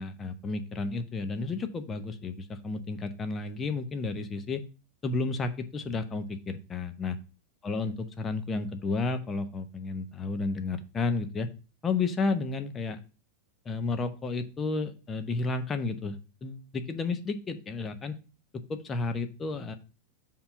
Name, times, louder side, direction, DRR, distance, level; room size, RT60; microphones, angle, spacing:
voice 1, 0.0-4.6 5.0-7.2 7.6-11.5 11.8-13.0 13.6-18.2 18.7-19.8, left 3 dB, 20° left, 8 dB, 0.9 m, -32 dB
7.0 x 3.8 x 5.6 m, 0.34 s
figure-of-eight pair, 90°, 0 cm